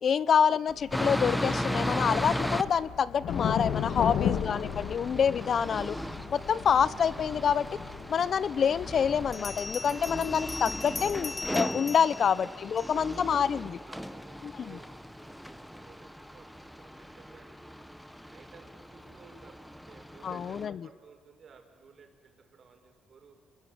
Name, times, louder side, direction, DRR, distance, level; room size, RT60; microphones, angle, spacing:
voice 1, 0.0-6.0 6.3-7.7 8.1-13.8 14.4-14.8 20.2-20.8, left 7 dB, 55° left, 19 dB, 0.8 m, -27 dB
sound 1, 0.7-11.5, left 8 dB, 75° left, 1.8 m, -36 dB
sound 2, 0.9-2.6 3.3-20.7, equal, ahead, 1.4 m, -37 dB
Bell, 9.3-13.2, left 3 dB, 25° left, 0.9 m, -40 dB
voice 2, 12.1-12.5 12.8-14.9 15.2-17.7 18.2-23.4, right 5 dB, 50° right, 4 dB, 6.1 m, -56 dB
29.0 x 21.5 x 9.6 m, 1.3 s
cardioid pair, 90°, 0 cm